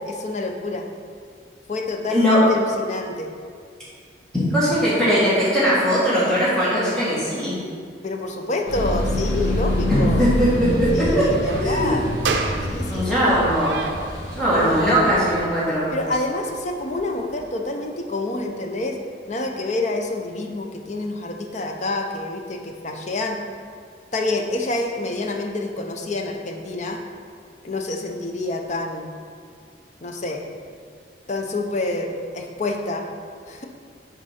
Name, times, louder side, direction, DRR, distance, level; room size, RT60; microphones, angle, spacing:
voice 1, 0.1-0.9 1.7-3.3 8.0-10.2 10.9-12.1 12.7-13.4 14.5-15.0 15.9-19.0 19.3-23.4 24.1-27.0 27.6-29.1 30.0-30.4 31.3-33.1 33.5-33.6, left 2 dB, 40° left, 3 dB, 0.6 m, -27 dB
voice 2, 2.1-2.4 4.3-7.6 10.2-11.1 11.6-12.0 12.9-13.8 14.4-15.9, equal, 5° left, -10 dB, 1.8 m, -20 dB
sound 1, 8.7-15.4, left 1 dB, 75° left, 1.7 m, -26 dB
sound 2, 11.5-17.5, right 4 dB, 75° right, 0.6 m, -33 dB
6.3 x 4.0 x 5.8 m, 2.2 s
head